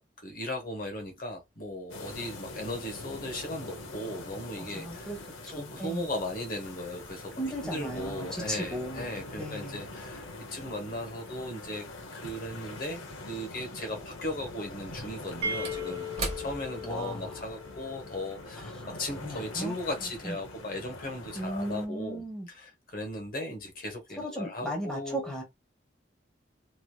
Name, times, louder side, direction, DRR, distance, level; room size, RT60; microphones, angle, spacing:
voice 1, 0.0-5.1 5.4-7.3 7.6-11.9 12.1-18.7 19.0-25.3, left 1 dB, 45° left, 0.9 m, -37 dB
sound 1, 1.9-21.9, left 2 dB, 85° left, 0.8 m, -44 dB
voice 2, 4.6-5.2 5.4-6.1 7.4-9.1 9.4-9.8 16.8-17.4 18.6-18.7 19.2-19.8 20.2-20.4 21.4-22.5 24.2-25.4, equal, 5° left, 0.9 m, -36 dB
sound 2, 15.4-19.1, left 2 dB, 70° right, 0.9 m, -38 dB
Slam / Wood, 15.6-19.4 19.8-19.9, right 3 dB, 30° right, 1.0 m, -42 dB
3.1 x 2.8 x 2.3 m
head